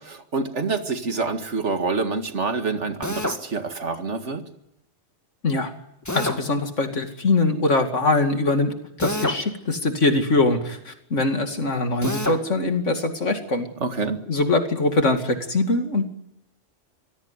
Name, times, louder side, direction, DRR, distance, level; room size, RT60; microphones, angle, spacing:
voice 1, 0.0-4.4 13.8-14.2, right 4 dB, 70° right, 7 dB, 2.3 m, -27 dB
Drill, 3.0-3.4 6.0-6.4 9.0-9.4 12.0-12.4, left 1 dB, 15° left, 1.8 m, -27 dB
voice 2, 6.1-13.7 14.3-16.0, left 2 dB, 80° left, 6 dB, 2.8 m, -22 dB
25.0 x 17.0 x 9.7 m, 0.84 s
omnidirectional pair, 1.3 m